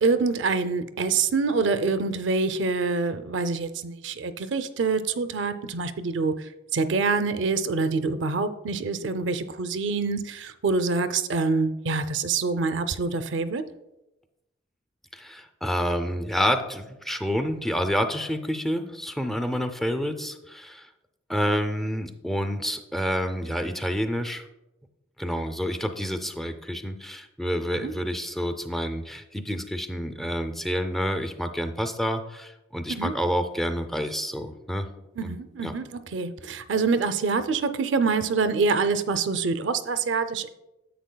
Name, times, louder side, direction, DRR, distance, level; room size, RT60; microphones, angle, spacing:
voice 1, 0.0-6.3 6.7-13.6 27.7-27.9 33.0-33.1 35.2-40.5, right 4 dB, 65° right, 11 dB, 0.5 m, -26 dB
voice 2, 15.1-20.9 21.3-24.4 25.2-34.9 35.2-35.3 35.6-35.7, equal, ahead, 8 dB, 0.5 m, -28 dB
10.0 x 7.8 x 2.2 m, 0.94 s
head